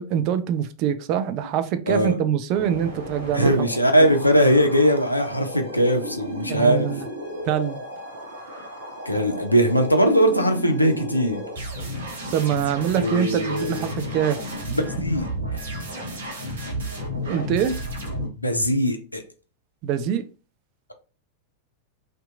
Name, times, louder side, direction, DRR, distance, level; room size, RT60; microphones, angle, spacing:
voice 1, 0.0-3.7 4.0-4.1 6.5-7.1 7.4-7.8 12.3-14.5 17.1-17.8 19.8-20.3, right 9 dB, 40° right, 0.3 m, -24 dB
voice 2, 1.9-2.2 3.3-6.9 9.1-11.5 12.9-13.9 14.7-15.2 18.4-19.2, equal, 85° left, 0.5 m, -20 dB
sound 1, 2.5-18.3, equal, 65° right, 0.7 m, -33 dB
2.8 x 2.2 x 2.4 m
figure-of-eight pair, 90°, 0 cm